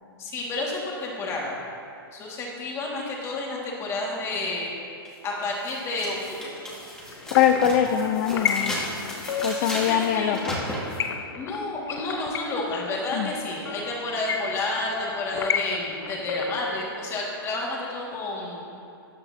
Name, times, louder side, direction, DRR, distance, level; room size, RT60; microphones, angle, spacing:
voice 1, 0.2-1.5 2.1-4.7 5.2-6.5 9.5-10.4 11.4-18.6, left 2 dB, 20° left, -3 dB, 2.0 m, -30 dB
sound 1, 5.0-5.1 5.6-11.1, equal, 5° left, 2.0 m, -35 dB
sound 2, 7.1-16.9, left 7 dB, 85° left, 0.6 m, -32 dB
voice 2, 7.3-8.8 9.4-10.6 13.1-13.3, left 9 dB, 40° left, 7 dB, 0.5 m, -22 dB
13.5 x 9.8 x 2.8 m, 2.7 s
hypercardioid pair, 150°, 12 cm